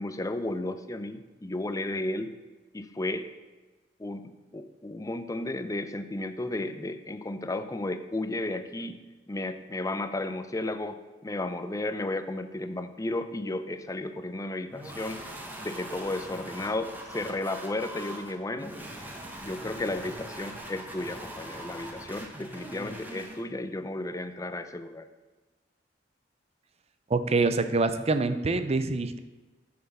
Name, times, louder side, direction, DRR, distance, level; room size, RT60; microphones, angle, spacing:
voice 1, 0.0-2.3 2.7-3.2 4.0-4.2 4.5-9.0 9.3-15.2 15.6-18.7 19.0-19.1 19.4-25.1, left 2 dB, 20° left, 10 dB, 0.5 m, -33 dB
sound 1, 14.7-23.4, right 1 dB, 10° right, 1.1 m, -42 dB
voice 2, 27.1-29.2, right 3 dB, 35° right, 11 dB, 0.5 m, -25 dB
6.9 x 6.8 x 5.4 m, 1.2 s
head